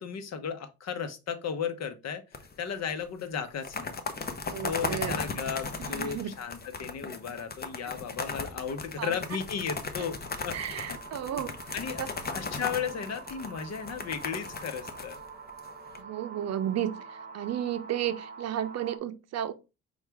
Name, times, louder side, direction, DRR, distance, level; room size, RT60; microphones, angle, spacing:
voice 1, 0.0-2.2 2.6-3.9 4.6-10.2 10.4-11.0 11.7-12.0 12.3-15.2, left 7 dB, 60° left, 0.9 m, -35 dB
sound 1, 2.3-2.8 3.0-3.1 3.5-16.0, left 4 dB, 30° left, 0.8 m, -37 dB
voice 2, 4.5-5.2 5.8-6.3 9.0-9.1 10.5-12.1 16.0-19.5, right 10 dB, 60° right, 0.6 m, -33 dB
sound 2, 9.2-19.0, right 5 dB, 30° right, 0.9 m, -46 dB
5.6 x 2.4 x 3.3 m
cardioid pair, 90°, 30 cm